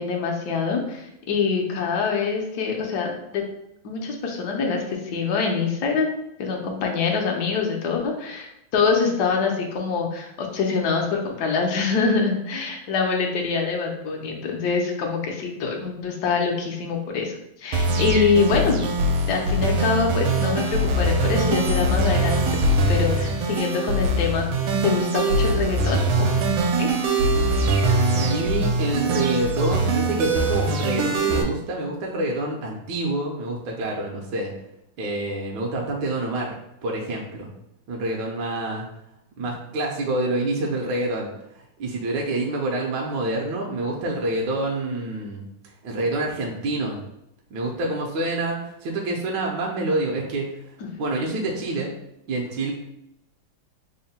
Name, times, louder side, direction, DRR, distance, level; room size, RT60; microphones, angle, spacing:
voice 1, 0.0-3.4 3.8-6.1 6.4-18.9 19.3-22.5 22.9-24.5 24.8-26.3 26.8-26.9 50.8-50.9, left 5 dB, 65° left, 1 dB, 1.1 m, -24 dB
sound 1, 17.7-31.4, right 2 dB, 90° right, 1.4 m, -22 dB
voice 2, 28.1-34.5 35.0-36.6 36.8-37.5 37.9-38.8 39.4-41.3 41.8-45.5 45.8-47.0 47.5-50.5 51.0-51.9 52.3-52.7, right 2 dB, 70° right, -1 dB, 1.1 m, -27 dB
3.5 x 2.1 x 4.1 m, 0.82 s
omnidirectional pair, 2.2 m